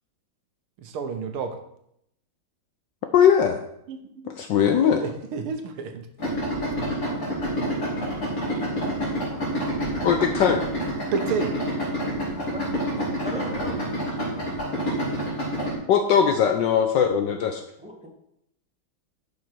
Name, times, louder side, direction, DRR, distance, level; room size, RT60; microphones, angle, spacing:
voice 1, 0.8-1.6 3.9-4.3 4.8-6.1 11.1-11.6, right 6 dB, 85° right, 7 dB, 1.9 m, -30 dB
voice 2, 3.1-3.6 4.3-5.0 10.0-10.6 15.9-17.6, left 8 dB, 70° left, 6 dB, 1.2 m, -20 dB
Idling, 6.2-15.8, equal, 40° left, 3.0 m, -28 dB
voice 3, 13.2-13.9 17.8-18.1, equal, 5° right, -2 dB, 1.4 m, -37 dB
11.0 x 5.4 x 4.6 m, 0.76 s
omnidirectional pair, 2.4 m